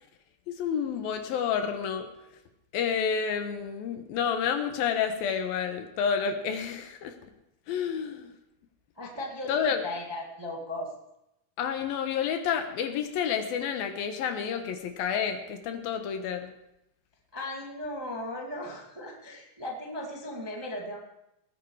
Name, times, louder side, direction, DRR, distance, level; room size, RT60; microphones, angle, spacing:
voice 1, 0.5-2.1 2.7-7.1 7.7-8.3 9.5-9.8 11.6-16.5, left 7 dB, 75° left, 7 dB, 2.9 m, -29 dB
voice 2, 9.0-10.9 17.3-21.0, left 1 dB, 15° right, -1 dB, 1.1 m, -37 dB
19.5 x 9.7 x 4.9 m, 0.85 s
omnidirectional pair, 4.3 m